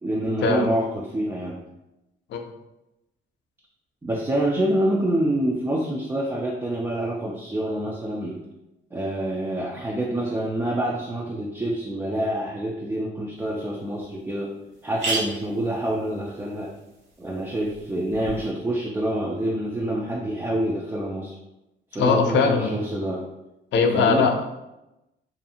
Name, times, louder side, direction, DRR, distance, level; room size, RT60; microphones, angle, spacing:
voice 1, 0.0-1.6 4.0-8.4 8.9-14.5 14.8-16.7 17.2-21.3 21.9-23.3 23.9-24.3, right 1 dB, 15° right, -2 dB, 0.3 m, -27 dB
sound 1, 13.4-13.5 14.0-14.1 14.3-14.4 14.7-18.5, right 2 dB, 70° right, 0.9 m, -35 dB
voice 2, 21.9-22.7 23.7-24.4, left 5 dB, 65° left, 4 dB, 0.4 m, -20 dB
2.6 x 2.3 x 2.7 m, 0.93 s
cardioid pair, 90°, 20 cm